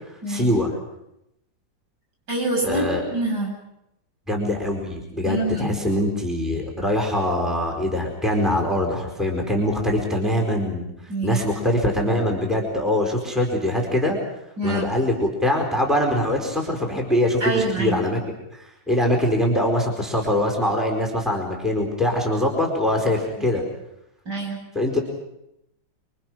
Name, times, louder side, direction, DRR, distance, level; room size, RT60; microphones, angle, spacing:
voice 1, 0.3-0.7 2.6-3.0 4.3-10.8 11.2-14.2 14.6-18.2 18.6-23.6 24.7-25.0, left 1 dB, ahead, 0 dB, 4.6 m, -23 dB
voice 2, 2.3-3.5 5.2-5.8 11.1-11.4 14.6-14.8 17.4-18.0 24.2-24.6, right 2 dB, 65° right, -2 dB, 8.3 m, -25 dB
27.0 x 24.0 x 6.3 m, 0.84 s
omnidirectional pair, 2.0 m